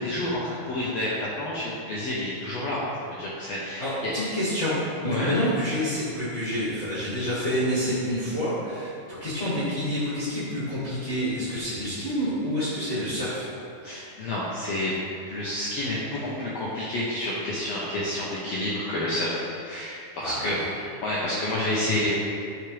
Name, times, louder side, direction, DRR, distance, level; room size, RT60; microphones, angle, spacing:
voice 1, 0.0-2.8 3.1-4.1 5.1-5.3 13.8-14.9 15.3-20.6 21.0-22.1, left 1 dB, 70° left, -7 dB, 1.5 m, -29 dB
voice 2, 3.8-8.9 9.2-13.5 20.2-20.4, equal, 25° left, -11 dB, 2.0 m, -28 dB
11.5 x 6.3 x 3.4 m, 2.5 s
omnidirectional pair, 4.3 m